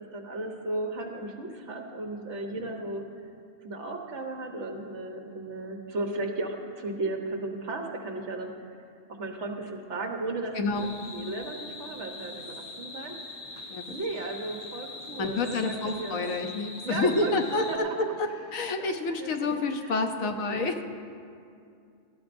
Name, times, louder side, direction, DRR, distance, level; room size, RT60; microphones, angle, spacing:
voice 1, 0.0-3.0 3.6-8.5 9.1-13.1 13.9-16.4 16.8-20.7, right 2 dB, 60° right, 2 dB, 1.4 m, -35 dB
voice 2, 10.5-10.9 13.7-13.8 15.2-17.8 18.2-20.8, left 3 dB, 75° left, 5 dB, 1.2 m, -28 dB
sound 1, 10.7-17.8, left 3 dB, 45° left, 1.0 m, -42 dB
18.0 x 13.5 x 2.6 m, 2.4 s
omnidirectional pair, 1.4 m